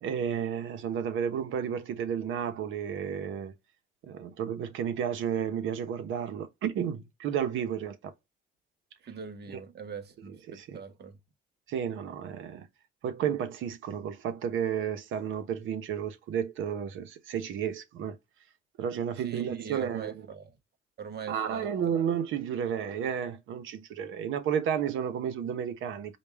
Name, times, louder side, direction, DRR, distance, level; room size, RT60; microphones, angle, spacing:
voice 1, 0.0-3.5 4.0-8.1 10.5-10.8 11.7-12.7 13.0-18.2 18.8-20.1 21.3-26.2, right 8 dB, 80° right, 1.0 m, -32 dB
voice 2, 9.0-11.2 19.2-20.6 21.0-21.7, right 7 dB, 55° right, 1.1 m, -40 dB
5.2 x 2.4 x 3.4 m
cardioid pair, 90°, 20 cm